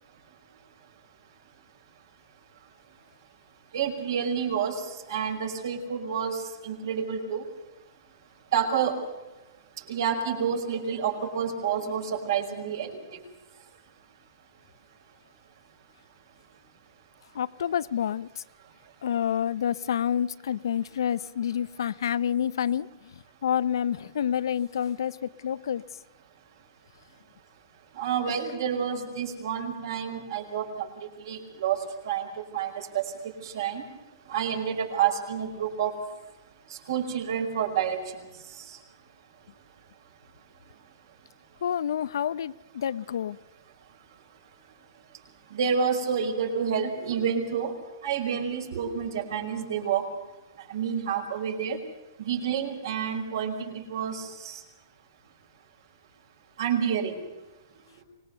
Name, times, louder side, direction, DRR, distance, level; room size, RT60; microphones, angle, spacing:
voice 1, 3.7-7.4 8.5-9.0 9.9-13.0 27.9-31.8 32.0-32.3 32.5-33.0 33.4-33.8 34.3-35.9 36.7-38.0 38.5-38.8 45.5-47.7 48.0-50.1 50.7-51.8 52.2-54.6 56.6-57.2, right 7 dB, 65° right, 5.1 m, -29 dB
voice 2, 17.3-18.4 19.0-22.9 23.4-25.8 41.6-43.4, left 9 dB, 80° left, 0.7 m, -28 dB
24.5 x 20.5 x 6.8 m
hypercardioid pair, 165°, 2 cm